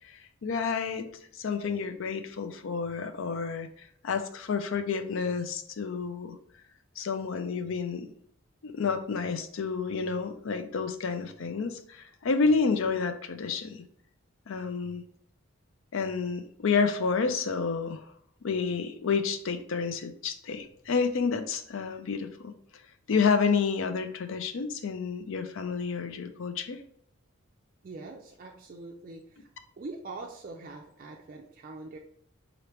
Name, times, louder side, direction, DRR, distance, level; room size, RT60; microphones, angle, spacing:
voice 1, 0.4-6.4 7.0-8.1 8.6-13.8 14.5-15.0 15.9-18.1 18.4-22.5 23.1-26.8, left 5 dB, 65° left, 9 dB, 0.4 m, -30 dB
voice 2, 27.8-29.5 29.8-32.0, right 3 dB, 40° right, 1 dB, 0.4 m, -43 dB
3.8 x 3.4 x 3.0 m, 0.65 s
head